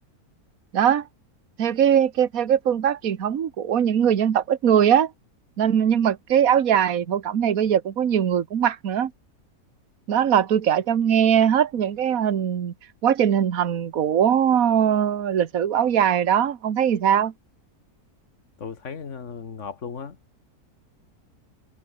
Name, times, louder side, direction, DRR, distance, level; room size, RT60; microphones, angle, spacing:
voice 1, 0.7-1.1 1.6-5.1 5.6-9.1 10.1-12.7 13.0-17.3, right 9 dB, 65° right, 1.7 m, -21 dB
voice 2, 18.6-20.2, left 6 dB, 50° left, 2.0 m, -36 dB
omnidirectional pair, 1.6 m